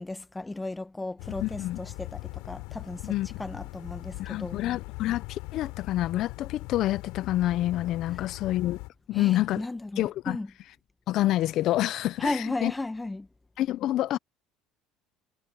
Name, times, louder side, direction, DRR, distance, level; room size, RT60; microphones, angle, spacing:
voice 1, 0.0-4.6 9.1-10.5 12.2-13.3, left 2 dB, 15° left, 1.3 m, -35 dB
sound 1, 1.2-8.9, left 25 dB, 75° left, 3.9 m, -40 dB
voice 2, 1.4-1.8 3.0-3.3 4.2-8.8 9.1-9.6 10.0-10.4 11.1-12.7 13.6-14.2, left 14 dB, 60° left, 0.7 m, -27 dB
supercardioid pair, 90°, 0 cm